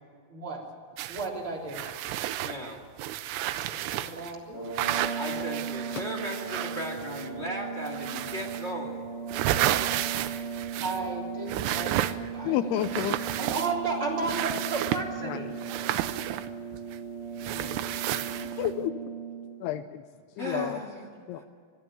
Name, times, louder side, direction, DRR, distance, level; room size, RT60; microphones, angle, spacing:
voice 1, 0.3-0.7 1.1-1.8 3.6-4.7 10.8-12.8 13.1-16.0, right 3 dB, 30° right, -2 dB, 3.9 m, -34 dB
sound 1, 1.0-1.3 1.7-4.3 4.7-7.4 7.9-8.7 9.1-11.1 11.5-12.4 12.8-13.9 14.2-15.1 15.6-17.0 17.4-18.7, right 13 dB, 90° right, 2.9 m, -32 dB
voice 2, 2.4-2.8 5.1-9.0 17.5-18.2 20.4-21.4, equal, 25° left, 2 dB, 1.4 m, -37 dB
sound 2, 4.4-19.6, right 6 dB, 5° right, 3.3 m, -37 dB
voice 3, 12.2-13.2 15.2-15.4 18.3-18.9 19.6-20.0 20.4-20.8 21.3-21.4, left 13 dB, 80° left, 11 dB, 2.6 m, -31 dB
21.5 x 14.0 x 9.0 m, 2.1 s
omnidirectional pair, 4.8 m